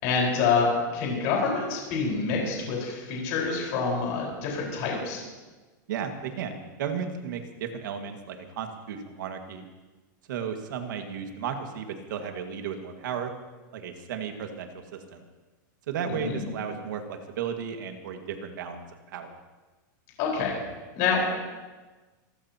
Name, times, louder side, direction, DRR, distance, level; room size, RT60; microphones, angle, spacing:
voice 1, 0.0-5.2 16.1-16.4 20.2-20.6 20.9-21.4, left 4 dB, 40° left, -2 dB, 4.9 m, -27 dB
voice 2, 5.9-9.6 10.3-13.3 13.7-14.7 15.1-15.2 15.9-18.8 19.1-19.3, right 7 dB, 70° right, 4 dB, 2.0 m, -34 dB
27.0 x 14.0 x 3.0 m, 1.2 s
supercardioid pair, 175°, 11 cm